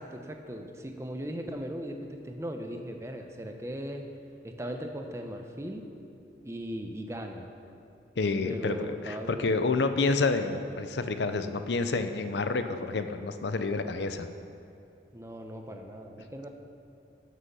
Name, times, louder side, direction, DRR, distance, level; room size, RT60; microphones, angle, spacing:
voice 1, 0.0-4.1 4.4-5.8 6.4-7.5 8.4-9.6 15.1-16.5, equal, 15° right, 4 dB, 0.7 m, -38 dB
voice 2, 8.2-14.3, left 3 dB, 80° left, 9 dB, 0.6 m, -29 dB
13.0 x 6.3 x 5.6 m, 2.7 s
head